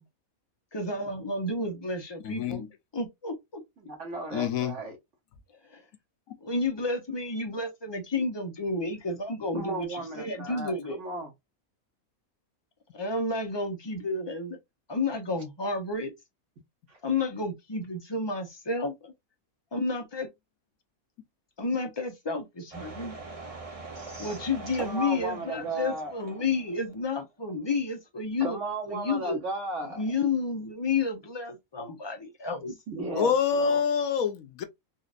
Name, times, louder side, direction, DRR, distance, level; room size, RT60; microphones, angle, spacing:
voice 1, 0.7-3.6 5.6-5.8 6.4-11.0 12.9-14.6 14.9-16.1 17.0-19.1 19.7-20.3 21.6-23.2 24.2-28.6 28.9-29.4 29.9-32.8, left 3 dB, 25° left, 0.6 m, -31 dB
voice 2, 2.2-2.6 4.3-4.7 33.1-34.6, left 6 dB, 75° left, 1.1 m, -26 dB
voice 3, 3.8-5.0 9.5-11.3 16.9-17.0 23.9-24.4 24.8-26.1 28.4-30.0 32.9-33.8, right 2 dB, 60° right, 1.3 m, -35 dB
sound 1, 22.7-27.2 27.5-27.6, right 3 dB, 35° right, 0.6 m, -43 dB
4.0 x 2.5 x 2.5 m
omnidirectional pair, 1.5 m